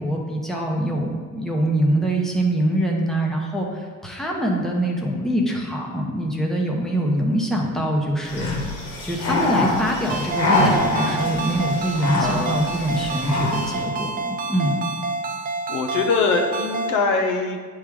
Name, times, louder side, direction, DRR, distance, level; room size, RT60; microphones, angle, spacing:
voice 1, 0.0-8.6 9.0-14.8, right 1 dB, ahead, -1 dB, 0.9 m, -24 dB
sound 1, 8.2-13.8, left 2 dB, 90° left, 2.0 m, -25 dB
Ringtone, 10.1-17.0, right 3 dB, 30° right, 0.5 m, -28 dB
voice 2, 12.2-12.7 15.7-17.6, left 4 dB, 70° left, 4 dB, 0.9 m, -23 dB
8.8 x 3.6 x 4.8 m, 1.5 s
cardioid pair, 135°, 31 cm